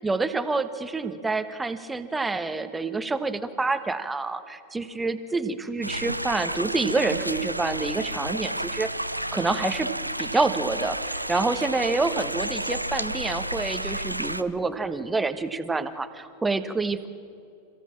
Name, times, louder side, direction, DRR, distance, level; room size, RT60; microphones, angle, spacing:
voice 1, 0.0-8.9 9.3-9.9 10.2-17.1, right 3 dB, 10° right, 10 dB, 1.2 m, -27 dB
sound 1, 5.8-14.4, right 1 dB, 85° right, 0.6 m, -31 dB
27.5 x 16.0 x 7.4 m, 2.6 s
figure-of-eight pair, 90°, 0 cm